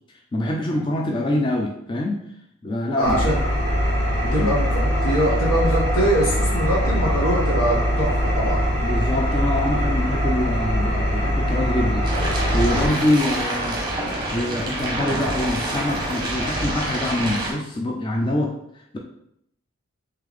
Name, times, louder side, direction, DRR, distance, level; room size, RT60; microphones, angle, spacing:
voice 1, 0.3-2.2 2.6-3.3 4.2-4.5 8.8-13.8 14.3-19.0, left 1 dB, 20° left, 0 dB, 0.3 m, -25 dB
voice 2, 3.0-3.4 4.3-8.6, right 1 dB, 85° left, -3 dB, 1.3 m, -23 dB
Engine, 3.0-12.9, equal, 55° left, 1.5 m, -22 dB
sound 1, 12.0-17.5, right 1 dB, 20° right, 0.8 m, -27 dB
3.3 x 3.2 x 3.7 m, 0.75 s
head